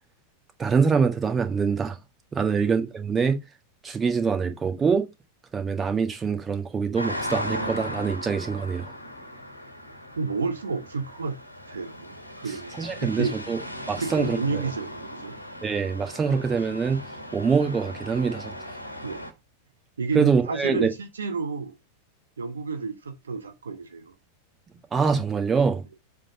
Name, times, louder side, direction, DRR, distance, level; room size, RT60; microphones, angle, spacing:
voice 1, 0.6-2.0 2.3-3.4 3.8-5.1 5.5-8.9 12.8-13.6 13.9-14.6 15.6-17.0 17.3-18.5 20.1-20.9 24.9-25.8, right 5 dB, 20° right, 1.5 m, -24 dB
sound 1, 7.0-19.3, equal, 90° left, 1.5 m, -37 dB
voice 2, 10.2-11.4 11.7-13.3 14.0-15.4 19.0-19.3 20.0-21.8 22.4-24.1, right 4 dB, 70° right, 0.9 m, -31 dB
7.5 x 3.6 x 5.1 m
figure-of-eight pair, 90°, 0 cm